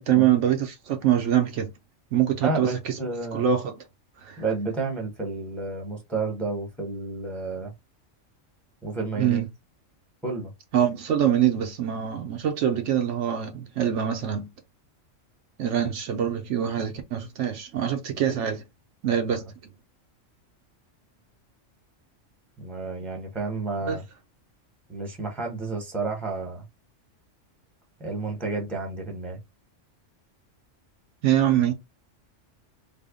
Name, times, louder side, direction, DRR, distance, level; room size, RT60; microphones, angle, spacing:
voice 1, 0.0-1.7 2.1-2.9 3.3-3.8 4.2-4.4 9.2-9.5 10.7-14.5 15.6-18.6 19.0-19.4 23.9-24.0 31.2-31.7, right 10 dB, 70° right, 0.9 m, -24 dB
voice 2, 2.4-3.5 4.4-7.7 8.8-9.4 10.2-10.5 22.6-24.0 24.9-26.6 28.0-29.4, right 3 dB, ahead, 0.9 m, -31 dB
3.5 x 2.1 x 3.6 m
omnidirectional pair, 1.3 m